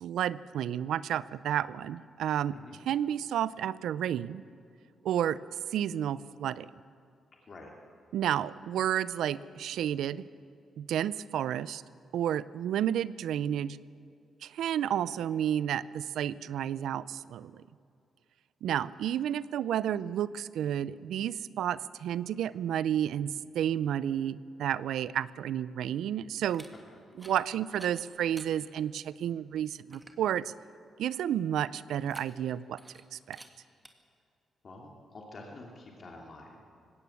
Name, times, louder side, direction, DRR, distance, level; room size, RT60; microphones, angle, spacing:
voice 1, 0.0-2.6 2.9-4.4 5.0-5.4 5.7-6.7 8.1-10.3 10.8-11.8 12.1-13.8 14.4-17.6 18.6-26.7 27.2-30.5 31.0-32.8 33.1-33.4, right 10 dB, 85° right, 18 dB, 0.5 m, -31 dB
sound 1, 26.4-26.7 27.1-27.4 27.7-28.5 29.1-29.2 29.6-29.7 29.9-30.2 31.9-32.5 32.8-33.0 33.3-33.5 33.9-34.0, right 2 dB, 15° right, 2.0 m, -51 dB
voice 2, 34.6-36.6, left 2 dB, 45° left, 0 dB, 2.9 m, -48 dB
19.0 x 17.0 x 8.4 m, 2.4 s
cardioid pair, 85°, 0 cm